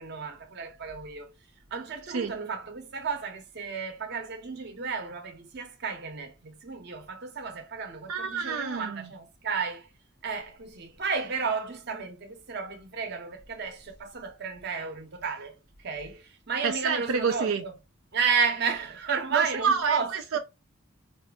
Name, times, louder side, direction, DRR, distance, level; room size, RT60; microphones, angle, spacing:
voice 1, 0.0-1.3 1.7-9.9 10.2-17.7 18.1-20.1, right 5 dB, 50° right, 0.8 m, -32 dB
voice 2, 8.1-9.1 16.6-17.6 19.3-20.4, right 6 dB, 85° right, 0.5 m, -28 dB
2.7 x 2.5 x 3.4 m
head